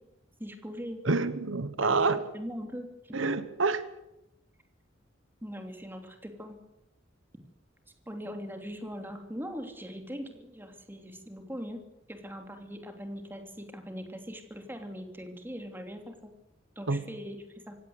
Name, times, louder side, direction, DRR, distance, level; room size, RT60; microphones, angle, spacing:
voice 1, 0.4-1.0 1.8-3.2 5.4-6.6 8.1-11.8 12.1-16.3 16.7-17.8, equal, 10° right, 3.0 m, -41 dB
voice 2, 1.0-2.2 3.1-3.9 16.9-17.0, right 3 dB, 80° right, 1.2 m, -27 dB
25.5 x 16.5 x 8.0 m
head